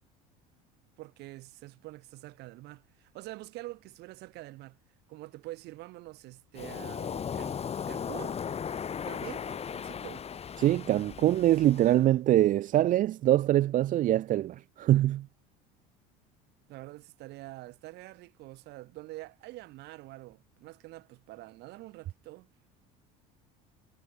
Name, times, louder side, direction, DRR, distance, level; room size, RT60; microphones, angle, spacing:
voice 1, 1.0-4.8 5.1-8.4 9.1-10.2 16.7-22.5, right 19 dB, 65° right, 3.5 m, -46 dB
Waves surf, 6.6-12.0, left 7 dB, 35° left, 2.7 m, -37 dB
voice 2, 10.6-15.3, right 13 dB, 45° right, 0.6 m, -24 dB
supercardioid pair, 90°, 19 cm